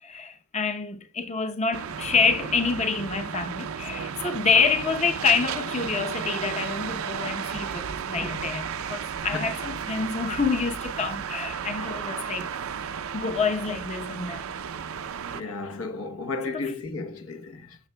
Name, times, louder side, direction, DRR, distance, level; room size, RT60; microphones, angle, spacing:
voice 1, 0.0-12.5 13.1-14.5 16.5-16.6, left 5 dB, 30° left, 0.7 m, -27 dB
sound 1, 1.7-15.4, right 7 dB, 75° right, 0.5 m, -33 dB
voice 2, 14.9-17.8, left 3 dB, 70° left, 0.9 m, -34 dB
14.0 x 6.6 x 2.2 m
head